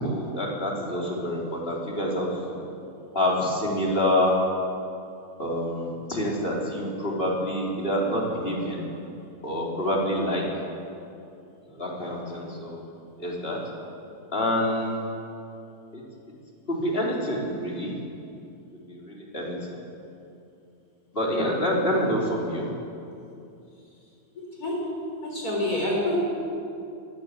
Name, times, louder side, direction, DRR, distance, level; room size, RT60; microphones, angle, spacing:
voice 1, 0.0-2.6 3.1-4.4 5.4-8.9 9.4-10.4 11.7-12.8 13.2-13.6 14.3-15.0 15.9-16.0 16.7-18.0 18.9-19.8 21.1-22.7, left 1 dB, 35° left, -3 dB, 4.4 m, -27 dB
voice 2, 24.4-24.9 25.2-26.2, left 1 dB, 65° left, -3 dB, 7.1 m, -27 dB
22.5 x 17.5 x 8.4 m, 2.7 s
omnidirectional pair, 1.7 m